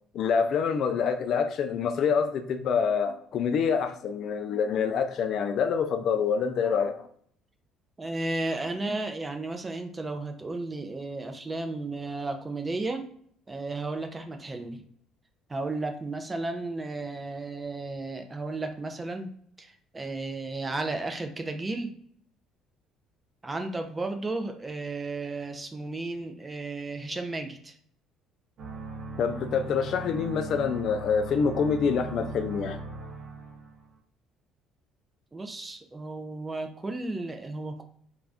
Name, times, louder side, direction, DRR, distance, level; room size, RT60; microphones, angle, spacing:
voice 1, 0.1-7.1 29.2-32.8, left 6 dB, 55° left, 0.3 m, -26 dB
voice 2, 8.0-13.0 13.5-14.8 15.5-19.3 19.6-21.9 23.4-27.7 35.3-37.8, right 2 dB, 20° right, 0.4 m, -34 dB
sound 1, 28.6-33.9, right 3 dB, 60° right, 0.8 m, -39 dB
2.5 x 2.1 x 3.4 m
cardioid pair, 105°, 0 cm